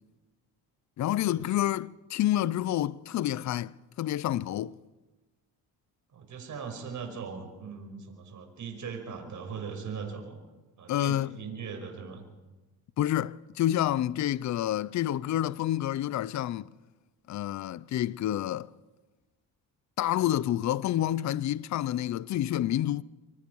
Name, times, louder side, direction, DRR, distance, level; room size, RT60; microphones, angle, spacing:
voice 1, 1.0-3.7 4.0-4.7 10.9-11.3 13.0-16.7 17.3-18.7 20.0-23.0, left 12 dB, 50° left, 0.6 m, -28 dB
voice 2, 6.1-10.4 10.8-12.2, right 6 dB, 50° right, 5.5 m, -39 dB
25.0 x 22.5 x 4.7 m
cardioid pair, 100°, 38 cm